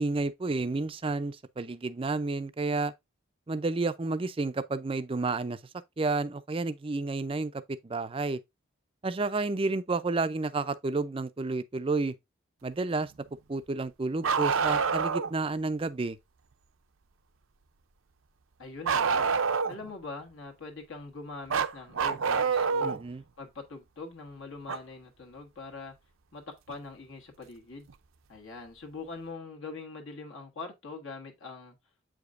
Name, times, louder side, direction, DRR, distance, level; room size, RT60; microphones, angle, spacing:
voice 1, 0.0-2.9 3.5-5.6 6.0-8.4 9.0-12.1 12.6-13.1 13.5-16.2 22.8-23.2, right 3 dB, 25° right, 0.4 m, -30 dB
Bark, 14.2-15.3 18.9-19.9 21.5-23.0 24.7-24.8 26.7-26.8 27.9-28.0, right 5 dB, 80° right, 0.6 m, -27 dB
voice 2, 18.6-19.3 19.7-23.0 23.4-25.9 26.3-27.9 28.3-31.7, left 3 dB, 70° left, 1.4 m, -43 dB
7.6 x 5.0 x 2.5 m
head